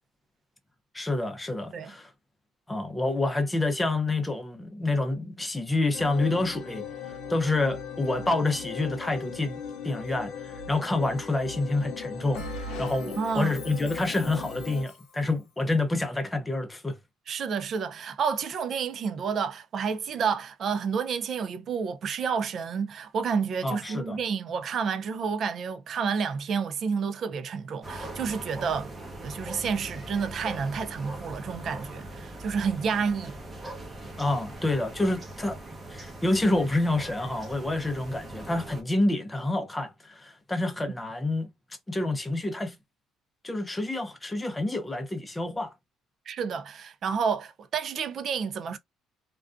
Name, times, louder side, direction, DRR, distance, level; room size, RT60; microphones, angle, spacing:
voice 1, 0.9-2.1 2.7-6.8 7.3-9.6 9.8-17.0 23.6-24.2 34.2-35.6 35.9-41.5 41.9-42.8 43.4-45.7, left 2 dB, 10° left, 0.5 m, -28 dB
sound 1, 5.9-14.8, left 6 dB, 60° left, 0.5 m, -38 dB
Bell, 12.3-15.1, equal, 85° left, 0.8 m, -42 dB
voice 2, 13.2-13.5 17.3-28.9 29.2-33.3 46.3-48.8, right 6 dB, 45° right, 0.4 m, -30 dB
sound 2, 27.8-38.8, right 1 dB, 20° right, 0.8 m, -41 dB
2.4 x 2.2 x 2.4 m
cardioid pair, 135°, 0 cm